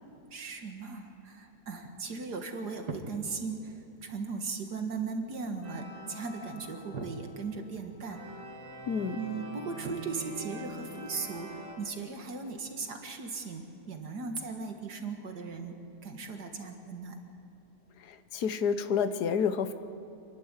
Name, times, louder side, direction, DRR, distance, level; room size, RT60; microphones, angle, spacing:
voice 1, 0.3-8.3 9.1-17.2, right 4 dB, 85° right, 4 dB, 2.4 m, -38 dB
sound 1, 5.6-7.6 8.0-11.7, equal, 30° right, 3.8 m, -45 dB
voice 2, 8.9-9.2 18.1-19.7, left 6 dB, 80° left, 11 dB, 1.5 m, -29 dB
27.5 x 11.5 x 9.7 m, 2.8 s
omnidirectional pair, 1.7 m